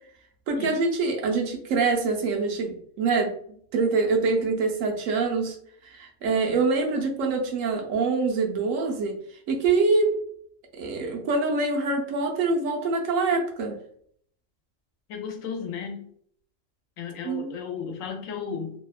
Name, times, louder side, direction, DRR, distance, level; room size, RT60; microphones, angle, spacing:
voice 1, 0.5-5.6 5.8-9.2 9.5-10.2 10.7-13.8 17.2-17.5, right 3 dB, 80° right, 1 dB, 1.0 m, -25 dB
voice 2, 15.1-16.0 17.0-18.7, left 6 dB, 80° left, 3 dB, 1.0 m, -34 dB
2.7 x 2.1 x 2.3 m, 0.63 s
omnidirectional pair, 1.4 m